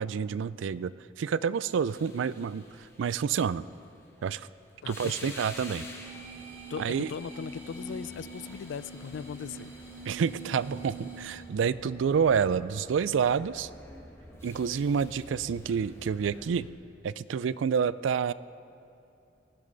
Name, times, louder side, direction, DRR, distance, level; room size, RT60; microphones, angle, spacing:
voice 1, 0.0-3.7 4.2-4.5 4.9-5.8 6.8-7.1 10.1-13.7 14.4-16.7 17.0-18.3, right 6 dB, 80° right, 17 dB, 0.4 m, -28 dB
sound 1, 1.9-16.7, left 1 dB, 15° left, 1.4 m, -49 dB
voice 2, 4.8-5.5 6.7-9.7, left 6 dB, 70° left, 18 dB, 0.3 m, -39 dB
sound 2, 5.1-11.6, right 2 dB, 15° right, 2.3 m, -45 dB
sound 3, 5.9-8.7, right 3 dB, 35° right, 1.1 m, -52 dB
20.0 x 14.5 x 3.9 m, 2.6 s
head